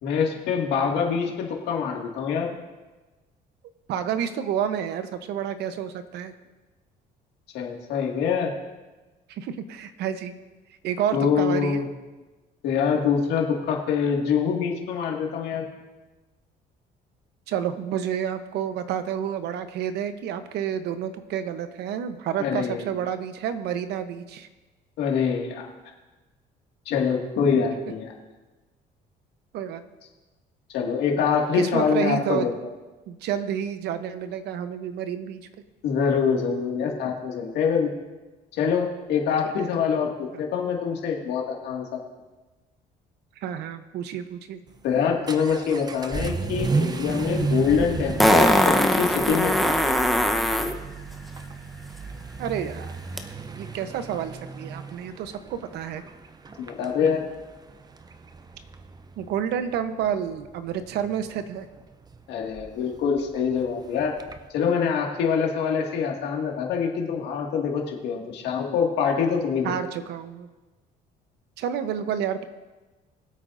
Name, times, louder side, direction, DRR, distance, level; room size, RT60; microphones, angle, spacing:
voice 1, 0.0-2.5 7.5-8.5 11.1-11.8 12.6-15.7 22.4-22.9 25.0-25.7 26.9-28.1 30.7-32.5 35.8-37.9 38.5-42.0 44.8-49.7 56.6-57.2 62.3-64.1 64.5-69.7, left 6 dB, 80° left, 0 dB, 2.0 m, -25 dB
voice 2, 3.9-6.3 9.3-10.3 10.8-11.8 17.5-24.5 29.5-29.8 31.6-32.5 33.1-35.4 43.4-44.6 52.4-53.0 53.6-56.0 59.2-61.7 69.6-70.5 71.6-72.4, right 9 dB, 75° right, 10 dB, 0.9 m, -29 dB
Vehicle / Accelerating revving vroom, 44.7-64.5, right 4 dB, 25° right, 0.6 m, -34 dB
Fart, 47.1-47.2 48.2-50.7 53.2-53.3, equal, ahead, 0.9 m, -20 dB
21.0 x 8.3 x 2.6 m, 1.2 s
cardioid pair, 110°, 17 cm